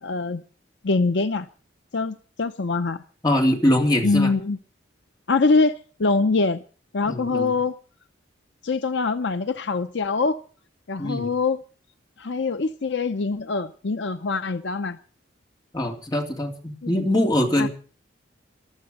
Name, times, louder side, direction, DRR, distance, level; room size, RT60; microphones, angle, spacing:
voice 1, 0.0-0.4 0.8-1.5 1.9-3.0 4.0-4.6 5.3-6.6 6.9-7.7 8.6-10.4 10.9-11.6 12.2-15.0 16.8-16.9 17.6-17.7, left 3 dB, 65° left, 11 dB, 0.7 m, -24 dB
voice 2, 3.2-4.3 7.0-7.5 11.0-11.3 15.7-17.7, left 1 dB, 20° left, 2 dB, 2.9 m, -22 dB
14.5 x 12.5 x 6.5 m, 0.39 s
head